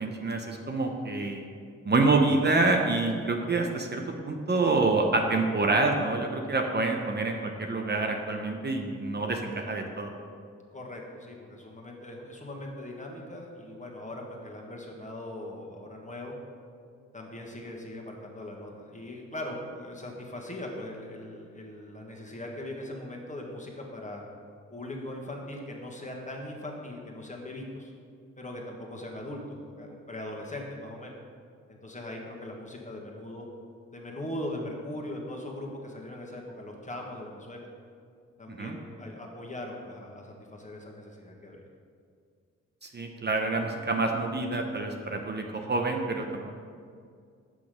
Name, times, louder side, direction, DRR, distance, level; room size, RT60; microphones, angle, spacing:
voice 1, 0.0-1.5 1.8-10.1 38.6-38.8 42.8-46.3, right 3 dB, 35° right, 2 dB, 0.8 m, -27 dB
voice 2, 10.7-16.3 17.1-24.2 24.7-27.9 28.4-31.2 31.7-33.5 33.9-37.7 38.4-41.6, left 1 dB, 25° left, -1 dB, 1.6 m, -40 dB
6.2 x 5.7 x 5.1 m, 2.2 s
supercardioid pair, 50°, 30 cm